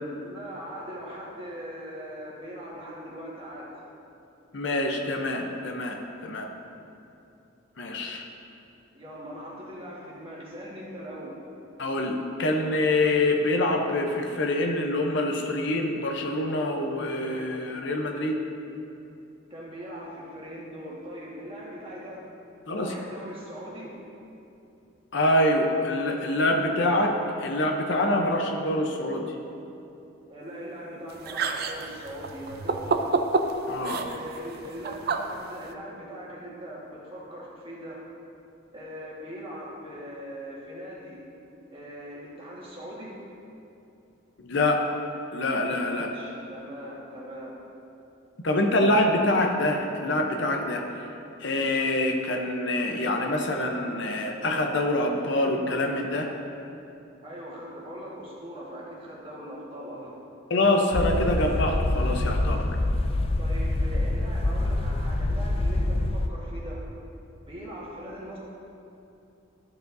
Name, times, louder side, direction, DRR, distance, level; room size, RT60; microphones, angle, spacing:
voice 1, 0.2-3.7 8.9-11.4 19.5-22.2 22.7-24.0 30.3-33.2 33.9-38.0 38.7-41.2 41.7-43.2 45.8-47.6 57.2-60.2 63.4-66.8 67.5-68.4, equal, 25° right, -5 dB, 1.6 m, -40 dB
voice 2, 4.5-6.5 7.8-8.2 11.8-18.4 22.7-22.9 25.1-29.2 33.7-34.0 44.4-44.8 45.3-46.1 48.4-51.1 51.4-56.3 60.5-62.6, left 1 dB, 60° left, 2 dB, 0.7 m, -25 dB
sound 1, 31.1-35.7, right 3 dB, 50° right, 0.4 m, -29 dB
sound 2, 60.9-66.3, left 2 dB, 30° left, 0.4 m, -26 dB
13.0 x 7.0 x 2.7 m, 2.8 s
head